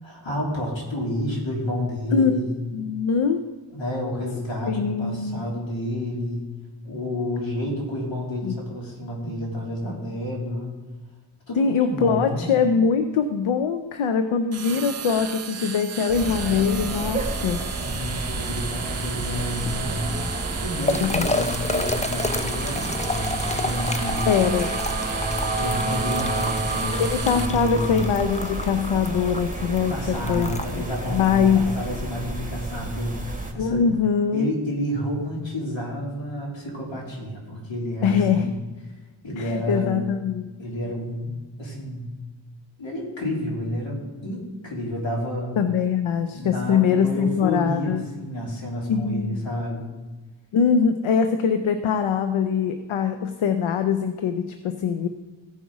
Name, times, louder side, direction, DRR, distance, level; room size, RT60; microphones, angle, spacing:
voice 1, 0.0-2.6 3.7-6.4 6.8-10.7 11.5-12.6 17.8-24.3 25.6-28.0 29.9-33.8 34.3-38.6 39.2-40.1 40.6-41.3 41.6-42.2 42.8-45.6 46.3-49.9, left 1 dB, 70° left, -3 dB, 3.2 m, -30 dB
voice 2, 2.7-3.4 4.7-5.4 8.4-8.5 11.6-17.6 21.0-21.2 23.9-24.7 27.0-30.8 31.1-31.7 33.6-34.5 38.0-38.5 39.4-40.5 45.6-48.0 48.9-49.4 50.5-55.1, left 6 dB, 90° left, 8 dB, 0.6 m, -22 dB
sound 1, 14.5-27.5, right 6 dB, 35° right, 0.7 m, -34 dB
sound 2, 16.1-33.5, right 2 dB, 15° right, 1.9 m, -30 dB
sound 3, 19.0-32.0, left 2 dB, 15° left, 0.6 m, -32 dB
15.5 x 5.5 x 4.8 m, 1.2 s
cardioid pair, 45°, 47 cm